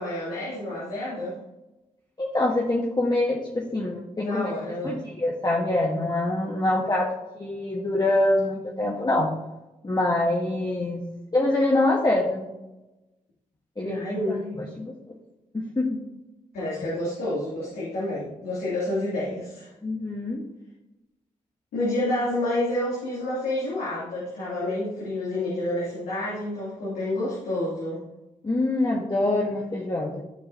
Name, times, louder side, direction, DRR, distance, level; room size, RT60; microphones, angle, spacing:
voice 1, 0.0-1.4 4.2-5.0 13.8-14.5 16.5-19.7 21.7-28.0, left 1 dB, 90° left, -9 dB, 2.9 m, -29 dB
voice 2, 2.2-4.5 4.8-9.3 9.8-11.0 11.3-12.5 13.8-14.0 14.3-14.9 15.5-16.0 19.8-20.4 28.4-30.2, left 2 dB, 30° left, -2 dB, 1.5 m, -25 dB
14.0 x 4.7 x 2.9 m, 0.98 s
supercardioid pair, 45°, 15 cm